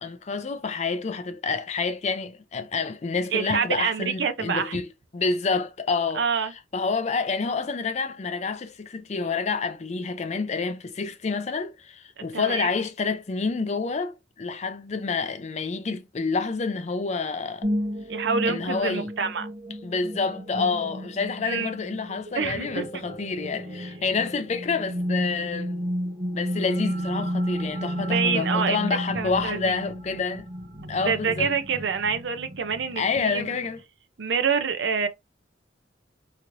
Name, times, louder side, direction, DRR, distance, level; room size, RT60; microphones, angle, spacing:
voice 1, 0.0-4.9 5.1-6.3 6.7-17.7 18.5-19.1 19.8-25.8 26.3-30.5 30.9-31.6 33.0-33.8, left 4 dB, 35° left, 0.4 m, -28 dB
voice 2, 3.3-4.8 6.1-6.5 12.2-12.7 18.1-19.5 21.4-21.7 22.3-22.8 27.9-28.8 29.1-29.7 31.0-33.5 34.2-35.1, right 6 dB, 70° right, 0.5 m, -27 dB
sound 1, 17.6-33.8, equal, 40° right, 1.0 m, -32 dB
3.0 x 2.9 x 2.5 m
head